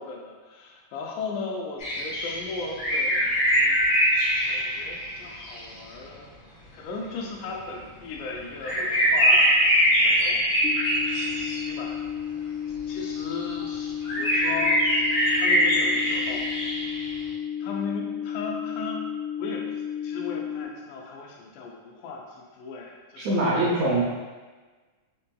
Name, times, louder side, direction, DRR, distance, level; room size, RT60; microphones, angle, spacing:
voice 1, 0.0-4.0 4.5-6.3 6.7-10.4 11.1-12.0 12.4-12.5 12.9-14.8 15.4-16.5 17.6-19.0 19.4-23.6, left 4 dB, 85° left, -1 dB, 2.0 m, -37 dB
sound 1, 1.8-5.7 7.6-7.7 8.6-12.1 13.1-13.6 14.0-17.1, equal, 60° left, 1.8 m, -23 dB
sound 2, 10.6-20.6, left 9 dB, 45° left, 0.6 m, -33 dB
voice 2, 23.2-24.0, right 2 dB, 80° right, -6 dB, 1.6 m, -23 dB
5.3 x 2.6 x 2.3 m, 1.3 s
omnidirectional pair, 3.5 m